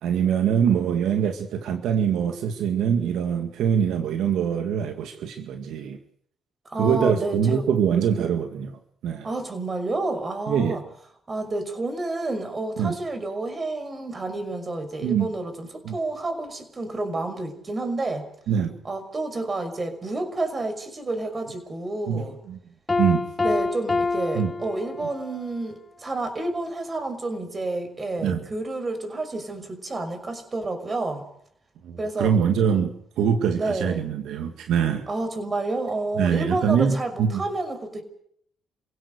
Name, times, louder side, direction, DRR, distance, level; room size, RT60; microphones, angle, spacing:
voice 1, 0.0-6.0 6.8-8.7 9.0-9.3 10.5-10.8 12.8-13.0 15.0-15.3 15.8-16.0 18.5-18.7 22.1-22.6 23.0-23.2 24.3-24.5 28.2-28.4 31.8-35.0 36.2-37.4, right 7 dB, 80° right, 6 dB, 2.1 m, -23 dB
voice 2, 6.7-7.7 9.2-10.8 11.3-18.3 18.8-22.3 23.4-31.3 32.0-32.3 33.6-34.1 35.1-38.0, right 2 dB, 30° right, 9 dB, 5.8 m, -29 dB
Piano, 22.9-25.4, left 3 dB, 25° left, 1.4 m, -27 dB
28.5 x 17.0 x 6.7 m, 0.67 s
cardioid pair, 90°, 0 cm